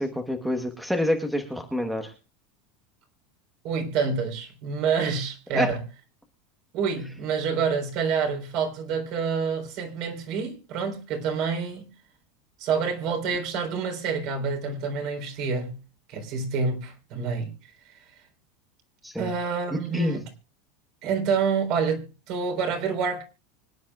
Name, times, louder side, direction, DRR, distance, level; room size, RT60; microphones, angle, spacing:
voice 1, 0.0-2.1 5.5-5.7 19.0-19.3 19.9-20.2, left 1 dB, ahead, 1.2 m, -27 dB
voice 2, 3.6-5.8 6.7-11.9 12.6-15.7 16.1-18.2 19.2-20.2 21.0-23.2, right 5 dB, 45° right, 3.9 m, -28 dB
25.0 x 10.5 x 2.4 m
supercardioid pair, 175°, 0 cm